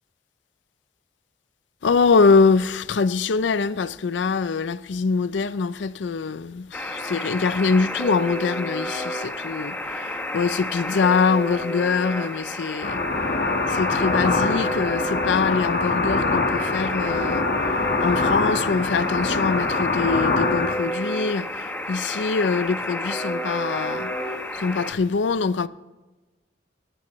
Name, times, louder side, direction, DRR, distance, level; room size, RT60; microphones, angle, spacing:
voice 1, 1.8-13.0 13.7-17.5 18.0-24.1 24.5-25.7, left 4 dB, 75° left, 0.5 m, -23 dB
Alarm, 6.7-24.9, left 1 dB, 10° left, 1.0 m, -30 dB
sound 1, 12.8-20.7, left 3 dB, 50° left, 1.4 m, -24 dB
21.5 x 12.0 x 3.1 m
head